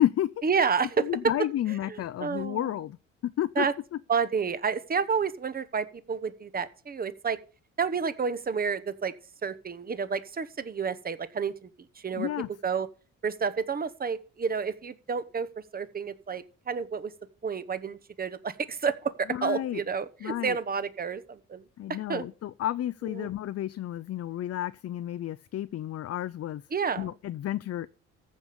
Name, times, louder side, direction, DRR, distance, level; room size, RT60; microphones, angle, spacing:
voice 1, 0.4-1.1 1.7-2.7 3.5-3.7 4.1-7.4 7.8-9.1 9.4-11.7 11.9-12.3 12.6-12.9 13.2-15.5 15.7-17.1 17.4-21.6 22.1-22.2 23.0-23.3 26.7-27.1, right 6 dB, 30° right, 1.0 m, -30 dB
voice 2, 1.0-3.0 3.2-3.6 12.2-12.5 19.3-19.8 20.2-20.6 21.8-26.6 27.0-27.9, left 12 dB, 55° left, 0.6 m, -31 dB
14.5 x 5.2 x 6.9 m
cardioid pair, 90°, 30 cm